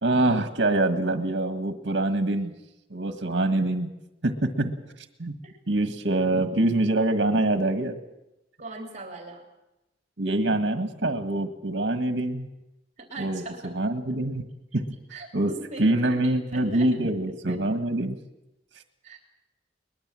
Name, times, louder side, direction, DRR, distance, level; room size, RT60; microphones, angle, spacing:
voice 1, 0.0-2.5 2.9-3.9 4.2-4.7 5.2-5.3 5.7-8.0 10.2-12.5 13.2-14.4 14.7-14.8 15.3-15.5 15.8-18.2, right 2 dB, 70° right, 7 dB, 1.6 m, -25 dB
voice 2, 8.6-9.4 13.0-13.7 15.1-16.9 19.0-19.2, right 2 dB, 40° right, 2 dB, 3.4 m, -40 dB
22.0 x 21.0 x 7.6 m, 0.93 s
head